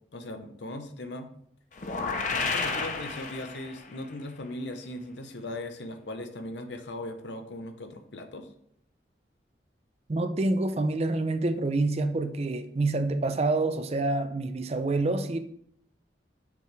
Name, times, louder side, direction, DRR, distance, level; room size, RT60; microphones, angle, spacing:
voice 1, 0.1-1.3 2.3-8.5, left 1 dB, 80° left, 0.7 m, -38 dB
sound 1, 1.8-4.0, left 4 dB, 45° left, 0.6 m, -31 dB
voice 2, 10.1-15.4, right 2 dB, 35° right, 0.4 m, -27 dB
6.7 x 5.0 x 3.4 m
head